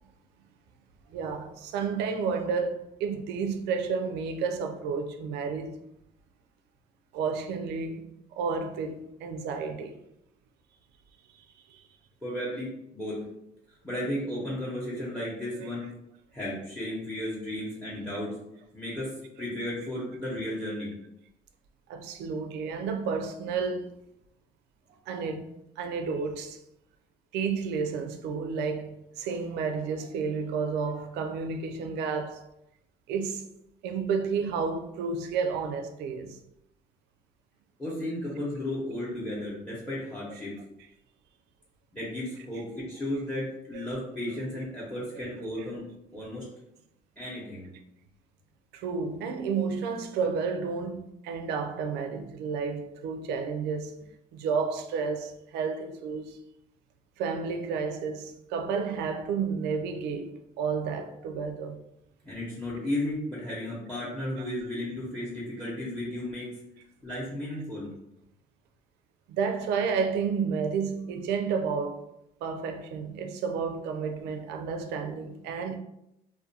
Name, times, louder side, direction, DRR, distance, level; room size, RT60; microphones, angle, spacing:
voice 1, 1.1-5.8 7.1-10.0 11.3-11.8 21.9-24.0 25.1-25.5 25.8-26.6 27.3-32.4 33.1-33.4 33.8-36.4 40.3-40.4 43.7-43.8 48.7-54.0 54.3-56.4 57.2-61.8 64.4-64.5 69.3-72.0 72.4-75.8, right 5 dB, 80° right, 0.4 m, -31 dB
voice 2, 12.2-13.3 13.8-15.9 16.3-18.4 18.7-19.1 19.4-20.9 37.8-40.5 41.9-46.5 47.2-47.7 62.2-66.5 67.0-67.9, left 1 dB, 5° left, 0.7 m, -34 dB
2.3 x 2.1 x 2.7 m
cardioid pair, 110°, 17 cm